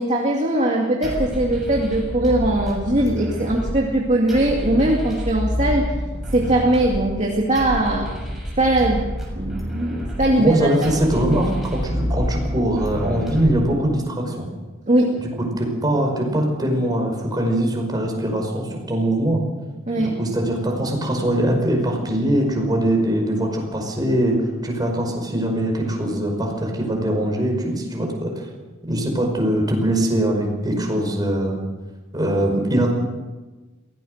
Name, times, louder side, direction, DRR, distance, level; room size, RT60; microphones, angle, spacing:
voice 1, 0.0-5.9 6.3-8.1 8.6-9.0 9.4-10.9 14.9-15.2 19.9-20.1, right 1 dB, 35° right, -1 dB, 2.3 m, -20 dB
sound 1, 1.0-14.0, equal, ahead, 6.6 m, -28 dB
voice 2, 10.4-14.5 15.2-15.3 15.6-19.4 20.0-28.5 28.8-31.7 32.1-32.9, right 1 dB, 20° right, 1 dB, 5.3 m, -22 dB
23.0 x 17.5 x 6.6 m, 1.2 s
head